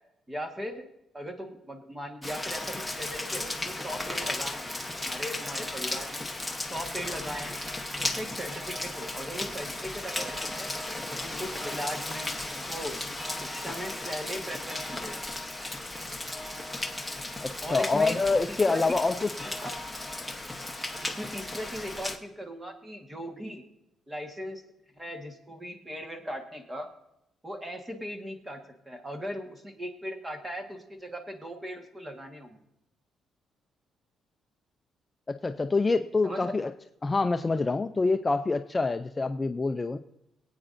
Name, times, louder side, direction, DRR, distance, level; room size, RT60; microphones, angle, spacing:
voice 1, 0.3-0.9 1.1-4.7 5.0-6.2 6.7-7.6 8.0-10.7 11.1-13.0 13.4-15.2 17.6-18.2 18.5-18.8 19.6-19.7 21.0-23.6 24.1-24.6 25.0-26.9 27.4-28.6 28.8-32.6 36.2-36.5, equal, 15° right, 4 dB, 1.4 m, -38 dB
Rain, 2.2-22.2, left 1 dB, 5° left, 1.0 m, -35 dB
voice 2, 17.4-19.5 35.3-36.7 37.0-40.0, left 3 dB, 20° left, 8 dB, 0.3 m, -26 dB
22.5 x 8.8 x 2.6 m, 0.86 s
cardioid pair, 135°, 0 cm